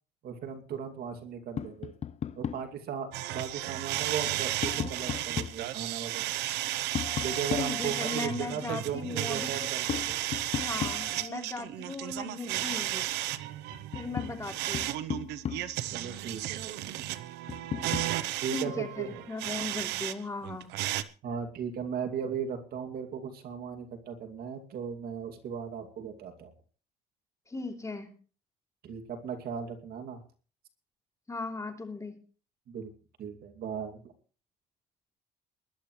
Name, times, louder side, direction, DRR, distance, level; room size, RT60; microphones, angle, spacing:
voice 1, 0.2-1.9 2.4-6.4 7.2-10.2 15.9-17.1 18.4-19.2 21.2-26.5 28.8-30.2 32.7-32.9 33.2-34.0, right 7 dB, 65° right, 6 dB, 2.5 m, -37 dB
Tap, 1.6-2.7 4.1-5.7 6.9-8.4 9.9-11.4 13.2-13.3 13.7-15.9 17.5-18.2, left 8 dB, 40° left, 0.6 m, -36 dB
sound 1, 3.1-20.1 20.4-21.0, right 15 dB, 90° right, 0.8 m, -34 dB
voice 2, 7.5-9.6 10.6-13.0 13.9-14.9 18.5-20.7 27.5-28.1 31.3-32.1, left 3 dB, 20° left, 4 dB, 3.0 m, -37 dB
22.0 x 11.5 x 3.2 m, 0.37 s
cardioid pair, 110°, 17 cm